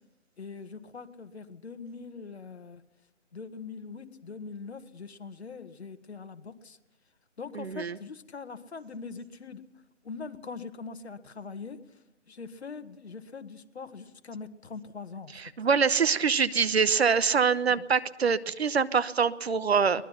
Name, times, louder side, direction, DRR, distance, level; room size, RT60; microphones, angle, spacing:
voice 1, 0.4-2.8 3.3-6.8 7.4-9.6 10.0-11.8 12.3-15.4 17.7-17.8 20.0-20.1, left 5 dB, 60° left, 9 dB, 1.7 m, -42 dB
voice 2, 7.5-8.0 15.3-20.0, right 6 dB, 55° right, 15 dB, 1.0 m, -25 dB
23.0 x 20.0 x 5.8 m, 0.98 s
figure-of-eight pair, 160°, 37 cm